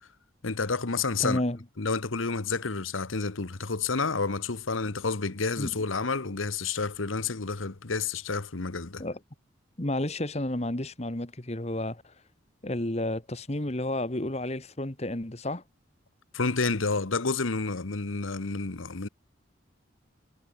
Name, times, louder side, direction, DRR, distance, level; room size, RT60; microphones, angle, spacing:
voice 1, 0.4-1.4 1.8-9.0 16.3-19.1, left 4 dB, 90° left, 1.3 m, -30 dB
voice 2, 1.2-1.6 5.6-5.7 9.0-9.2 9.8-12.1 12.6-15.6, left 1 dB, 30° left, 1.5 m, -31 dB
head